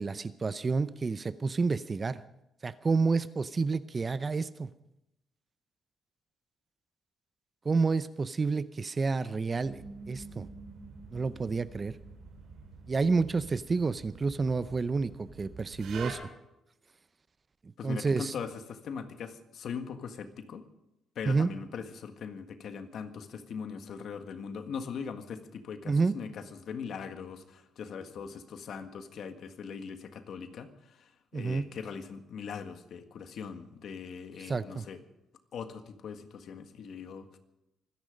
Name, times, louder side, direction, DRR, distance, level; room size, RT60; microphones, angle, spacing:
voice 1, 0.0-2.2 2.6-4.7 7.6-10.5 11.1-11.9 12.9-16.2 17.8-18.3 21.3-21.5 25.9-26.1 31.3-31.6 34.5-34.9, right 4 dB, 30° right, 15 dB, 0.6 m, -29 dB
sound 1, 9.6-16.1, right 5 dB, 75° right, 5.5 m, -47 dB
voice 2, 17.8-20.6 21.1-35.0 35.5-37.4, left 6 dB, 65° left, 8 dB, 1.7 m, -41 dB
25.0 x 10.5 x 5.2 m, 0.89 s
cardioid pair, 90°, 0 cm